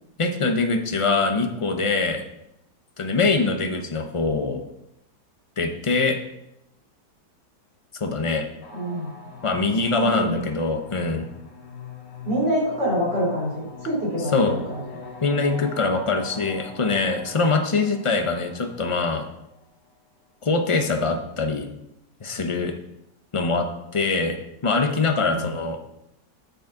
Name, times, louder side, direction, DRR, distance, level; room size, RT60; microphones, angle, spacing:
voice 1, 0.2-2.2 3.0-4.6 5.6-6.2 8.0-8.5 9.4-11.3 14.3-14.6 15.2-19.3 20.4-21.7 22.2-22.7 23.3-23.7 23.9-24.4 24.6-25.8, left 3 dB, 30° left, 5 dB, 0.6 m, -23 dB
sound 1, 8.6-19.8, left 5 dB, 70° left, 2.2 m, -42 dB
voice 2, 8.7-9.1 10.0-10.5 12.2-14.8 25.3-25.5, equal, 75° right, -3 dB, 3.9 m, -26 dB
9.3 x 9.1 x 3.9 m, 0.84 s
omnidirectional pair, 1.9 m